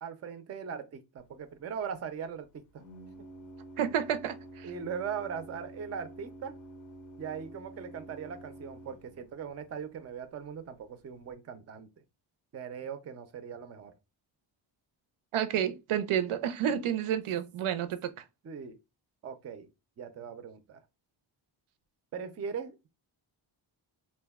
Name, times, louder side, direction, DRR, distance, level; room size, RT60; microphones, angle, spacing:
voice 1, 0.0-2.8 4.6-6.6 7.2-11.9 12.5-13.9 18.4-18.8 19.2-19.7 20.0-20.8 22.1-22.9, right 7 dB, 35° right, 0.4 m, -40 dB
Organ, 1.2-11.3, right 1 dB, 40° left, 0.4 m, -51 dB
voice 2, 3.8-4.7 15.3-18.1, right 9 dB, 85° right, 0.5 m, -30 dB
2.6 x 2.1 x 3.4 m
wide cardioid pair, 140°, 48 cm